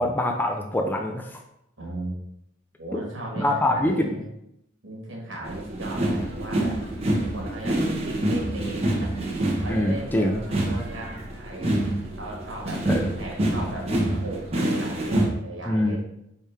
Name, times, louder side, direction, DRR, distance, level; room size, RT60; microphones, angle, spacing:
voice 1, 0.0-1.4 2.9-3.0 3.4-4.2 9.7-10.4 12.9-13.1 15.7-16.0, left 1 dB, 10° left, 3 dB, 0.3 m, -24 dB
voice 2, 1.8-2.2 2.8-4.3 4.8-6.8 7.2-9.1 9.6-11.7 12.2-16.0, right 2 dB, 80° right, -1 dB, 1.4 m, -37 dB
sound 1, 5.4-15.3, right 1 dB, 30° right, 0.9 m, -27 dB
4.5 x 3.2 x 3.3 m, 0.79 s
head